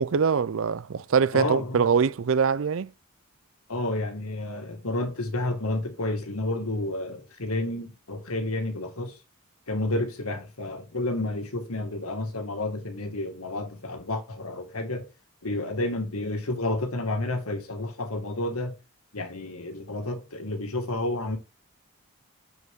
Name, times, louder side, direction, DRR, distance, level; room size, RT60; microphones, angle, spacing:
voice 1, 0.0-2.9, right 6 dB, 65° right, 0.4 m, -23 dB
voice 2, 1.3-1.9 3.7-9.2 9.7-15.1 15.4-18.7 19.1-21.4, left 2 dB, 80° left, 1.9 m, -30 dB
7.2 x 6.5 x 3.6 m
head